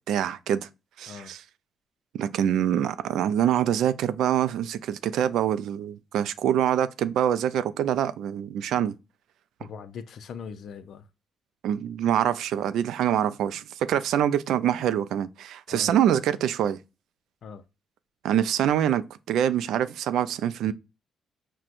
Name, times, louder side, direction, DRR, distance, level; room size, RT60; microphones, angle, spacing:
voice 1, 0.1-0.7 1.0-1.4 2.1-8.9 11.6-16.8 18.2-19.0 19.3-20.7, right 10 dB, 80° right, 0.3 m, -25 dB
voice 2, 9.6-11.1 15.7-15.9 17.4-17.6, left 6 dB, 65° left, 0.5 m, -41 dB
5.9 x 2.2 x 2.5 m
cardioid pair, 90°, 0 cm